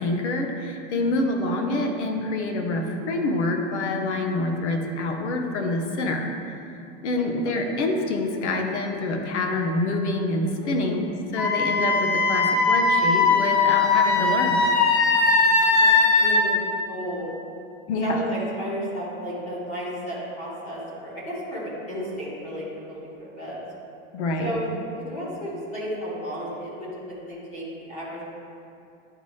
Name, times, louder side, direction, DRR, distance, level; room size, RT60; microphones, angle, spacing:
voice 1, 0.0-6.5 7.0-14.7 17.9-18.2 24.1-24.5, left 2 dB, 60° left, 3 dB, 1.0 m, -26 dB
voice 2, 10.6-10.9 15.5-15.9 16.2-16.5 16.9-17.3 18.0-23.6 24.4-24.7 25.1-26.9 27.2-28.2, equal, 15° left, -7 dB, 1.3 m, -33 dB
Wind instrument woodwind instrument, 11.4-16.4, left 3 dB, 35° left, 0.5 m, -20 dB
11.0 x 4.2 x 3.2 m, 2.5 s
supercardioid pair, 180°, 40 cm